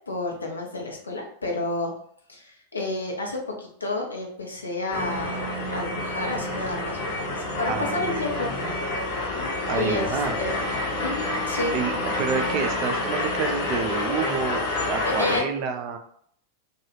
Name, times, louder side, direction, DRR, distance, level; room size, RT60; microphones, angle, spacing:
voice 1, 0.1-1.9 2.3-8.5 9.7-10.6 11.0-11.8 15.2-15.4, left 2 dB, 75° left, 0 dB, 0.6 m, -30 dB
sound 1, 4.9-15.4, left 2 dB, 50° left, 0.8 m, -28 dB
voice 2, 7.7-8.1 8.4-8.8 9.7-10.4 11.7-11.9 12.2-16.0, right 6 dB, 40° right, 6 dB, 0.4 m, -29 dB
2.3 x 2.3 x 2.9 m, 0.63 s
figure-of-eight pair, 90°, 0 cm